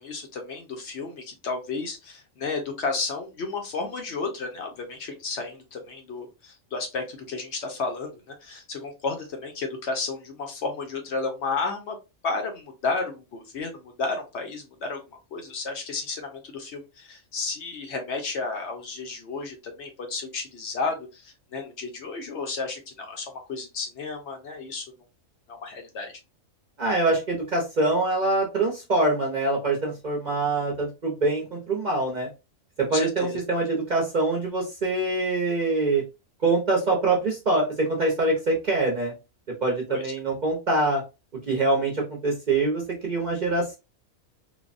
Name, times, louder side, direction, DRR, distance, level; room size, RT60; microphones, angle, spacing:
voice 1, 0.0-12.0 12.2-15.0 15.3-24.9 25.5-26.2 32.9-33.4 39.9-40.0, left 4 dB, 65° left, 4 dB, 0.9 m, -32 dB
voice 2, 26.8-32.3 32.8-36.0 36.4-39.1 39.6-41.0 41.5-43.7, right 2 dB, 45° right, -1 dB, 0.6 m, -24 dB
3.2 x 2.1 x 2.4 m, 0.27 s
omnidirectional pair, 1.4 m